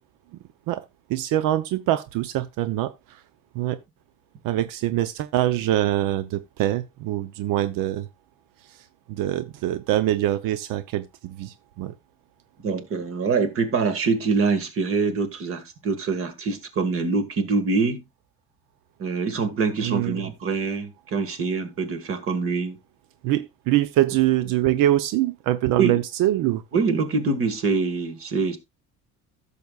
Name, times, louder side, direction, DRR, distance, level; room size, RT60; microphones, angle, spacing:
voice 1, 0.7-3.2 3.5-3.8 4.4-8.1 8.7-8.8 9.1-11.9 19.8-20.3 23.2-26.6, right 13 dB, 85° right, 0.7 m, -24 dB
voice 2, 12.6-18.0 19.0-22.8 25.8-26.0 26.7-28.6, right 4 dB, 45° right, 1.8 m, -24 dB
15.5 x 6.9 x 2.4 m
cardioid pair, 160°, 32 cm